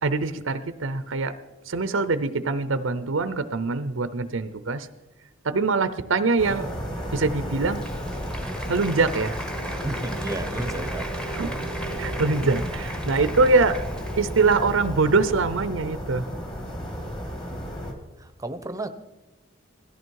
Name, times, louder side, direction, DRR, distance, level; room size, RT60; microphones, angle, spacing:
voice 1, 0.0-1.3 1.7-4.9 5.4-6.7 7.1-7.8 8.7-9.4 11.3-11.5 12.0-13.8 14.2-16.2, right 3 dB, 75° right, 12 dB, 0.7 m, -23 dB
sound 1, 6.4-17.9, equal, 25° left, 2.5 m, -33 dB
Applause, 7.4-15.0, right 1 dB, 5° left, 1.1 m, -38 dB
voice 2, 9.8-11.1 18.2-18.9, right 1 dB, 15° right, 10 dB, 0.8 m, -32 dB
17.5 x 14.0 x 4.7 m, 1.1 s
head